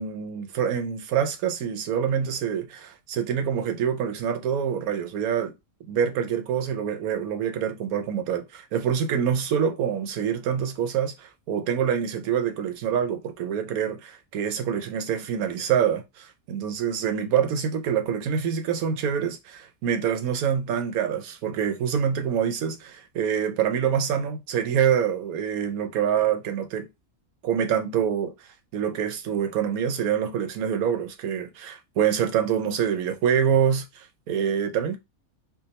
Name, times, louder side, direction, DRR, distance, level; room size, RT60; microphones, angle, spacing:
voice 1, 0.0-5.5 5.9-26.9 27.4-28.3 28.7-35.0, right 8 dB, 90° right, 1.1 m, -26 dB
3.4 x 2.3 x 4.0 m
omnidirectional pair, 1.5 m